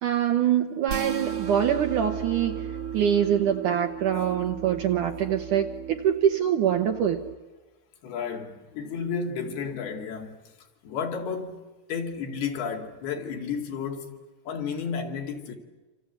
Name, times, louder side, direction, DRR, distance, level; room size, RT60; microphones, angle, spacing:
voice 1, 0.0-2.6 2.9-7.2, right 9 dB, 65° right, 2.1 m, -24 dB
sound 1, 0.9-7.3, right 8 dB, 50° right, 1.8 m, -35 dB
voice 2, 8.0-10.4 10.8-14.2 14.5-15.5, left 6 dB, 70° left, 4.4 m, -32 dB
27.0 x 27.0 x 8.2 m
omnidirectional pair, 4.8 m